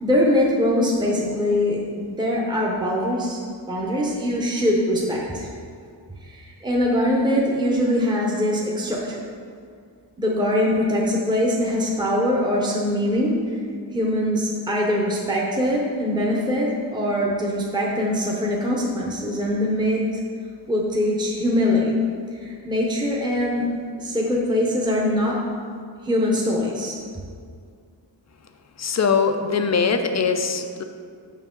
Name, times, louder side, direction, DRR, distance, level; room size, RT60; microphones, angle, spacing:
voice 1, 0.0-3.4 3.7-5.5 6.2-9.2 10.2-13.6 13.9-20.1 20.7-22.0 22.3-23.7 24.0-25.4 26.0-27.0, left 1 dB, 10° right, -3 dB, 0.9 m, -22 dB
voice 2, 28.8-30.8, left 5 dB, 40° left, 7 dB, 0.5 m, -21 dB
7.3 x 5.8 x 3.8 m, 2.1 s
wide cardioid pair, 140°, 45 cm